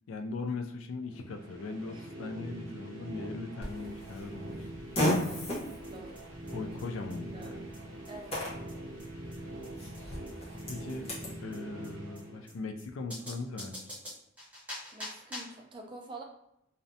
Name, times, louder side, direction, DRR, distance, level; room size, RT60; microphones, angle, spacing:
voice 1, 0.1-4.7 6.5-7.7 10.7-11.1 11.4-13.8, left 3 dB, 80° left, 6 dB, 0.3 m, -39 dB
sound 1, 1.0-13.0, right 1 dB, 90° right, 0.6 m, -44 dB
Fart, 3.6-11.3, equal, 30° left, 0.9 m, -37 dB
voice 2, 5.1-6.3 7.3-7.6 8.1-8.4 14.9-16.2, right 2 dB, 25° right, 2 dB, 0.3 m, -47 dB
sound 2, 5.5-5.6 5.8-5.9 6.2-6.3 6.5-6.6 6.8-6.9 7.1-7.2 7.4-7.5 7.7-7.8 8.0-8.1 8.4-8.5 8.7-8.8 9.0-9.1 9.3-9.4 9.6-9.7 9.9-10.0 10.3-10.4 10.6-10.7 10.9-11.0 11.2-11.3 11.5-11.6 11.8-11.9 12.2-12.3 12.5-12.6 12.8-12.9 13.1-15.6, left 1 dB, 5° right, 0.7 m, -44 dB
2.6 x 2.0 x 2.6 m, 0.80 s
head